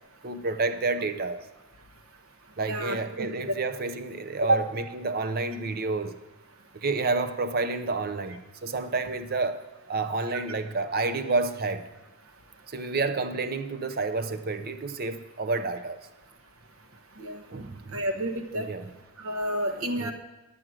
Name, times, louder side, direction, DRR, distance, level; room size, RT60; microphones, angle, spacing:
voice 1, 0.2-1.4 2.6-6.2 6.7-11.8 12.7-16.0 17.5-18.0 18.7-18.8 19.7-20.1, right 3 dB, 40° right, 0.6 m, -30 dB
voice 2, 2.6-3.5 4.5-4.6 17.2-17.4 17.9-18.7 19.2-20.1, right 1 dB, 65° right, 1.1 m, -29 dB
11.5 x 7.8 x 6.2 m
head